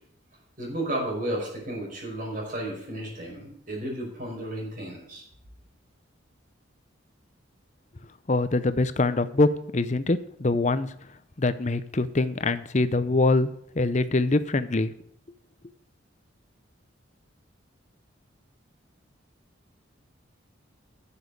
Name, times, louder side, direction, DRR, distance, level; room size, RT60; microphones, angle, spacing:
voice 1, 0.6-5.2, right 1 dB, 40° right, -1 dB, 5.2 m, -33 dB
voice 2, 8.3-10.9 11.4-14.9, left 2 dB, 35° left, 13 dB, 0.6 m, -24 dB
10.0 x 7.2 x 8.2 m, 0.67 s
head